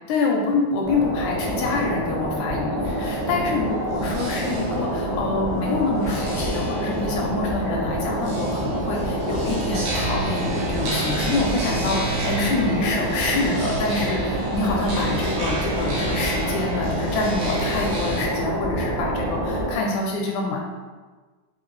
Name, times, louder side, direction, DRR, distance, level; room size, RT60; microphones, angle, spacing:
voice 1, 0.1-20.6, left 3 dB, 80° left, 0 dB, 1.7 m, -26 dB
sound 1, 0.8-19.7, right 1 dB, 60° right, 1.3 m, -27 dB
sound 2, 2.8-18.2, right 2 dB, 80° right, 2.2 m, -33 dB
5.1 x 2.0 x 3.1 m, 1.4 s
omnidirectional pair, 3.7 m